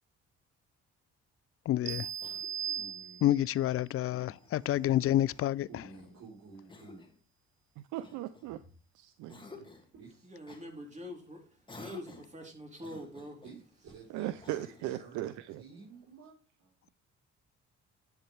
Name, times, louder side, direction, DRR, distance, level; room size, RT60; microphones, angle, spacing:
voice 1, 1.7-2.1 3.2-5.7, left 13 dB, 50° left, 0.4 m, -28 dB
sound 1, 1.9-3.6, right 9 dB, 45° right, 0.4 m, -38 dB
Cough, 2.2-3.0 4.3-5.5 6.7-7.2 8.0-8.8 9.3-9.9 10.5-10.7 11.7-12.4 12.8-13.6 14.4-15.0, left 3 dB, 15° left, 2.3 m, -52 dB
voice 2, 2.7-3.3 4.2-4.3 5.7-7.0 9.9-10.3 13.4-14.3 14.8-16.3 16.6-16.7, right 4 dB, 65° right, 4.1 m, -52 dB
voice 3, 7.8-8.6 8.9-9.6 14.1-15.6, right 14 dB, 90° right, 0.6 m, -38 dB
voice 4, 10.2-13.4, equal, 25° right, 3.7 m, -45 dB
10.5 x 7.3 x 3.4 m
cardioid pair, 85°, 29 cm